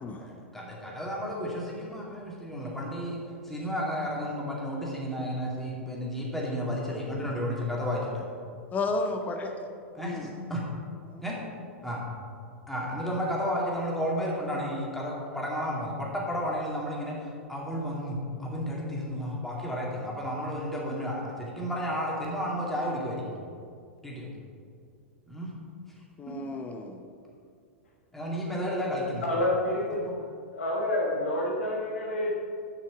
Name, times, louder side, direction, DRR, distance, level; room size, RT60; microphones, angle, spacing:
voice 1, 0.2-3.2 3.4-8.2 9.9-10.6 11.2-11.3 11.8-12.0 12.7-23.4 24.0-24.3 25.3-25.5 26.3-26.4 28.1-29.4 29.9-30.2, equal, 5° left, -4 dB, 2.3 m, -32 dB
voice 2, 8.7-9.5 10.0-10.3 11.1-11.2 26.2-27.0, left 3 dB, 20° left, 5 dB, 0.8 m, -32 dB
voice 3, 29.2-30.0 30.5-32.4, left 1 dB, 75° left, -2 dB, 1.3 m, -28 dB
8.1 x 5.7 x 6.1 m, 2.3 s
figure-of-eight pair, 100°, 7 cm